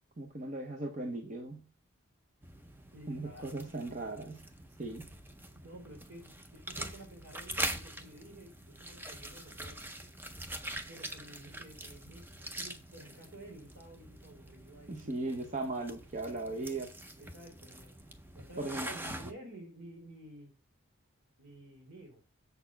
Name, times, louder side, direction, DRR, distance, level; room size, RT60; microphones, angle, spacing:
voice 1, 0.2-1.6 3.1-4.5 4.8-5.1 14.9-16.9 18.6-18.9, right 2 dB, 35° right, 0.8 m, -38 dB
sound 1, 2.4-19.3, right 1 dB, 10° right, 0.5 m, -44 dB
voice 2, 2.9-3.6 5.5-9.8 10.9-15.6 16.4-16.8 17.2-18.0 18.3-20.5 21.4-22.2, right 1 dB, 65° right, 3.4 m, -52 dB
7.0 x 4.3 x 5.7 m
head